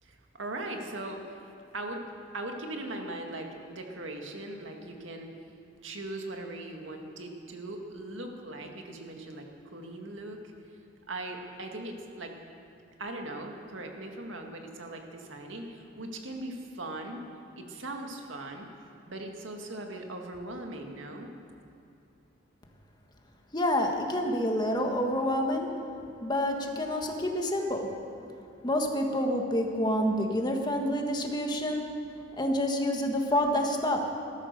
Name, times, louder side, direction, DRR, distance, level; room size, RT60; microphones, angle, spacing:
voice 1, 0.0-2.1 2.3-5.3 5.8-9.5 9.7-10.4 11.1-12.4 13.0-17.2 17.6-18.7 19.1-21.3, right 2 dB, 85° right, 3 dB, 2.0 m, -39 dB
voice 2, 23.5-25.7 26.2-27.9 28.6-31.8 32.4-34.0, left 1 dB, 20° left, 2 dB, 1.6 m, -28 dB
15.0 x 13.5 x 6.8 m, 2.8 s
head